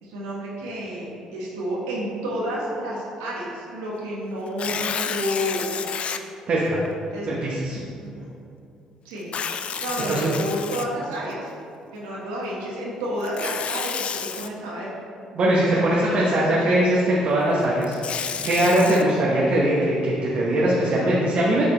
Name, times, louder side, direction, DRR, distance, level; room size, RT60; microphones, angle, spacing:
voice 1, 0.0-1.1 1.3-5.7 7.1-7.3 8.0-8.3 9.0-9.3 9.8-11.5 11.9-14.9 15.7-16.9, equal, 85° right, -5 dB, 1.4 m, -30 dB
Tearing, 4.5-6.2 6.8-6.9 9.2-11.3 13.2-14.5 17.6-19.0, left 7 dB, 50° left, 0.4 m, -30 dB
voice 2, 6.5-6.8 7.3-7.8 10.1-10.3 15.3-18.0 18.4-21.7, right 1 dB, 55° right, -5 dB, 1.1 m, -21 dB
8.7 x 4.2 x 3.3 m, 2.5 s
hypercardioid pair, 60°, 2 cm